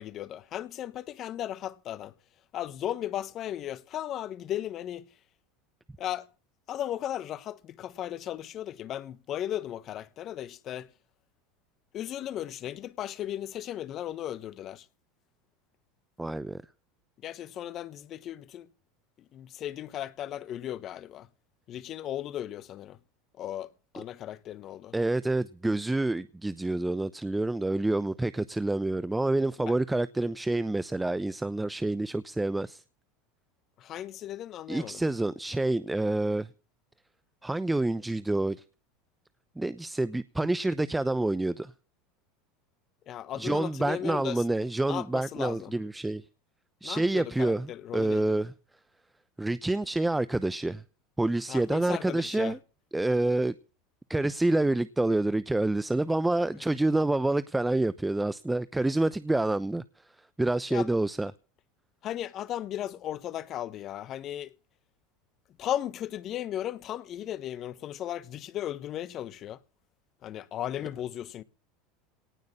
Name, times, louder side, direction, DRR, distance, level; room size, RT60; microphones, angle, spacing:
voice 1, 0.0-2.1 2.5-5.1 6.0-6.3 6.7-10.9 11.9-14.9 17.2-18.7 19.3-21.3 21.7-23.0 23.4-24.9 29.6-29.7 33.8-35.0 43.1-44.4 44.9-45.7 46.8-48.3 51.5-52.5 56.5-56.6 60.7-60.9 62.0-64.5 65.6-69.6 70.2-71.4, left 11 dB, 45° left, 1.2 m, -36 dB
voice 2, 16.2-16.6 24.9-32.8 34.7-36.5 37.4-38.6 39.6-41.7 43.4-46.2 46.8-48.5 49.4-50.8 51.2-52.6 52.9-53.5 54.1-59.8 60.4-61.3, right 2 dB, 10° right, 0.8 m, -27 dB
18.5 x 6.5 x 9.8 m
hypercardioid pair, 90°, 0 cm